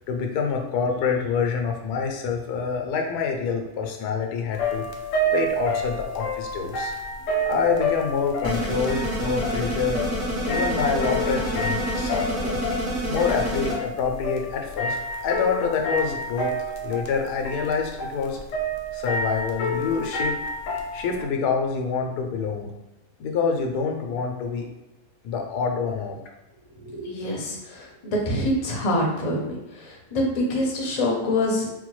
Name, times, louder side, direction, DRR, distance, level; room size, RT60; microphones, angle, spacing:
voice 1, 0.1-4.8 5.3-6.9 7.4-10.0 10.4-12.6 13.1-15.0 15.2-16.5 16.8-18.4 18.9-20.4 20.9-22.7 23.2-24.7 25.2-26.2, left 5 dB, 85° left, 3 dB, 1.2 m, -26 dB
Linverno LP, 4.5-21.2, equal, 65° left, 0.8 m, -30 dB
sound 1, 8.4-13.7, right 1 dB, 60° right, 1.4 m, -28 dB
voice 2, 26.8-31.7, left 1 dB, 40° left, -1 dB, 0.5 m, -26 dB
4.1 x 2.2 x 3.1 m, 0.98 s
omnidirectional pair, 1.6 m